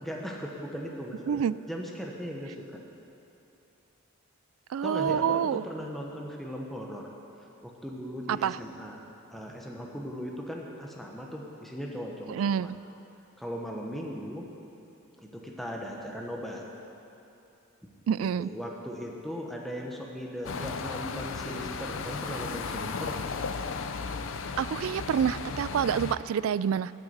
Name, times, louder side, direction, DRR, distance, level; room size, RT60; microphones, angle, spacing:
voice 1, 0.0-2.8 4.8-7.1 7.6-9.0 9.3-12.7 13.4-14.4 15.3-16.6 18.4-23.2, equal, ahead, -1 dB, 1.0 m, -38 dB
voice 2, 4.7-5.6 8.3-8.6 12.3-12.8 18.1-18.5 24.6-26.9, right 8 dB, 70° right, 18 dB, 0.3 m, -27 dB
sound 1, 20.4-26.2, left 5 dB, 60° left, 0.5 m, -35 dB
10.5 x 9.5 x 8.0 m, 2.8 s
head